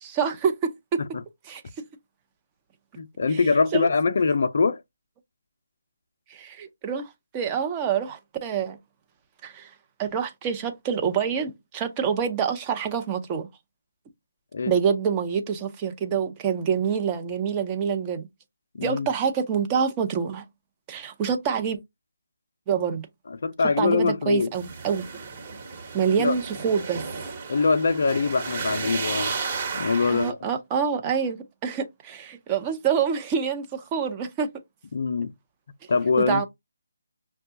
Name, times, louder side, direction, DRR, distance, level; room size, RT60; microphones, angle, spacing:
voice 1, 0.0-1.0 1.5-1.6 3.3-3.4 3.7-3.9 6.3-8.8 9.4-9.7 10.0-13.5 14.7-18.3 18.8-20.4 20.9-21.8 22.7-23.1 23.8-25.1 25.9-27.0 30.1-34.5 36.3-36.4, right 7 dB, 20° right, 0.5 m, -26 dB
voice 2, 3.0-4.8 14.5-14.8 18.7-19.1 23.3-24.5 26.2-26.3 27.5-29.3 29.7-30.4 34.9-35.3 35.9-36.4, left 4 dB, 55° left, 0.4 m, -23 dB
sound 1, 24.5-30.3, right 4 dB, 35° right, 1.1 m, -33 dB
5.8 x 2.2 x 2.7 m
figure-of-eight pair, 150°, 0 cm